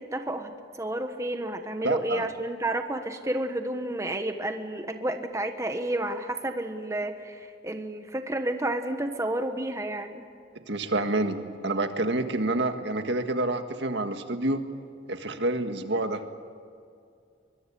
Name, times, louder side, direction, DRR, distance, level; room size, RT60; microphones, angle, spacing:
voice 1, 0.0-10.2, right 1 dB, 15° right, 6 dB, 1.3 m, -31 dB
voice 2, 1.8-2.3 10.7-14.6 15.1-16.4, right 2 dB, 70° right, 7 dB, 1.8 m, -28 dB
24.0 x 22.5 x 8.6 m, 2.3 s
head